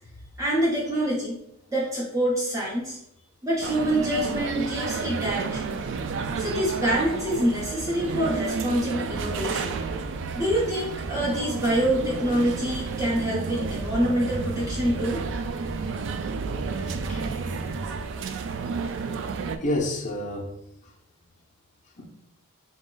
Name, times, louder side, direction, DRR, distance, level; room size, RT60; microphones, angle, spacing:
voice 1, 0.4-1.4 1.7-3.0 3.4-5.6 6.4-9.8 10.3-15.2, equal, 15° right, 0.8 m, -26 dB
sound 1, 3.6-19.6, right 5 dB, 55° right, 0.3 m, -32 dB
sound 2, 9.1-17.9, right 2 dB, 90° right, 0.7 m, -37 dB
voice 2, 16.8-17.3 18.8-18.9 19.6-20.5 22.0-22.1, left 1 dB, 35° left, 0.6 m, -30 dB
5.1 x 2.1 x 3.7 m
head